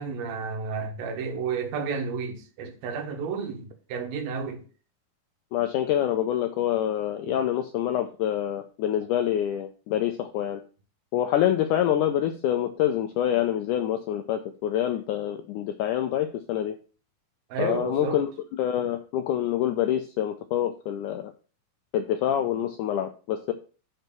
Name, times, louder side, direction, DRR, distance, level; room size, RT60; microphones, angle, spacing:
voice 1, 0.0-4.6 7.3-7.4 17.5-18.2, right 5 dB, 75° right, 3.0 m, -32 dB
voice 2, 5.5-10.6 11.1-16.7 17.6-21.3 21.9-23.5, left 11 dB, 85° left, 1.8 m, -26 dB
6.4 x 4.5 x 6.6 m
omnidirectional pair, 4.3 m